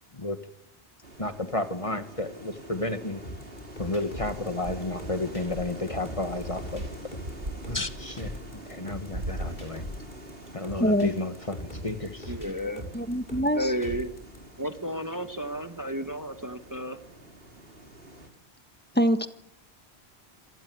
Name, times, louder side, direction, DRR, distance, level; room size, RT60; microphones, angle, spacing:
sound 1, 1.0-18.3, right 1 dB, 60° right, 4.3 m, -43 dB
voice 1, 1.2-3.2 3.8-6.9 7.7-7.8 8.0-9.8 10.5-12.3, left 2 dB, 30° left, 9 dB, 1.7 m, -32 dB
sound 2, 3.2-14.4, left 1 dB, 45° left, 7.5 m, -41 dB
voice 2, 10.8-11.1 12.9-13.7 18.9-19.3, equal, 10° left, 9 dB, 1.5 m, -24 dB
voice 3, 12.3-12.8 13.5-14.1 14.6-17.0, equal, 20° right, 8 dB, 1.4 m, -32 dB
27.0 x 19.0 x 9.6 m, 0.79 s
omnidirectional pair, 1.1 m